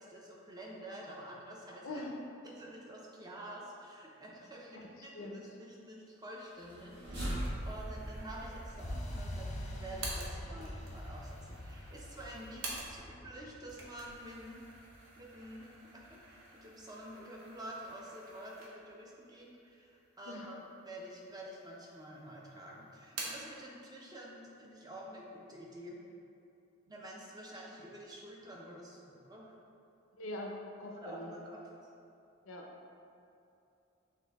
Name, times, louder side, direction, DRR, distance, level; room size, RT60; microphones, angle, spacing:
voice 1, 0.0-2.0 2.4-14.6 15.2-26.0 26.9-29.6 30.9-31.6, right 1 dB, 20° right, -3 dB, 0.6 m, -49 dB
voice 2, 1.8-2.2 4.7-4.8 5.1-5.4 20.3-20.5 30.2-31.3 32.4-32.6, left 1 dB, 80° left, 0 dB, 0.6 m, -43 dB
sound 1, 6.5-11.8, equal, 55° right, 1.4 m, -42 dB
sound 2, 7.3-13.3 13.6-19.1 19.5-19.6 20.4-21.1 21.4-22.2 22.4-23.6, right 2 dB, 70° right, 0.9 m, -48 dB
sound 3, 8.8-16.7, left 1 dB, 35° left, 0.4 m, -46 dB
5.9 x 2.6 x 3.4 m, 2.7 s
head